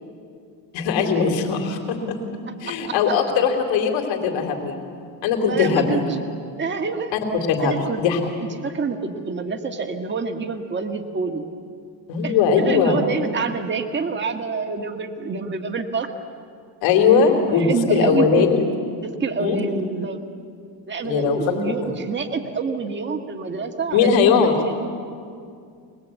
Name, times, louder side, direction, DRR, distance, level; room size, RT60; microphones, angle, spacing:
voice 1, 0.7-2.2 2.6-4.8 5.2-6.0 7.1-7.2 7.5-8.2 12.1-13.0 16.8-18.6 19.4-19.6 21.0-21.4 23.9-24.5, left 6 dB, 80° left, 3 dB, 3.2 m, -19 dB
voice 2, 2.6-3.1 5.4-6.2 6.6-7.1 7.6-8.0 8.4-11.4 12.2-16.1 17.5-18.6 19.2-20.2 20.9-24.8, right 4 dB, 25° right, 4 dB, 1.7 m, -27 dB
24.5 x 20.0 x 8.3 m, 2.3 s
cardioid pair, 115°, 45 cm